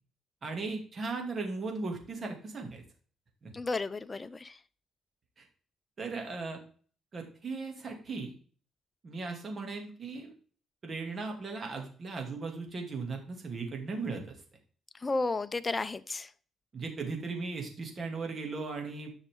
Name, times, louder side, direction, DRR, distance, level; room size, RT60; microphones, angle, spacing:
voice 1, 0.4-2.8 3.4-3.5 5.4-5.5 6.0-6.6 7.1-8.3 9.0-10.3 10.8-14.3 16.7-19.1, right 4 dB, 40° right, 2.7 m, -37 dB
voice 2, 3.5-4.5 15.0-16.3, left 3 dB, 25° left, 0.6 m, -32 dB
11.0 x 6.2 x 3.9 m
cardioid pair, 90°, 0 cm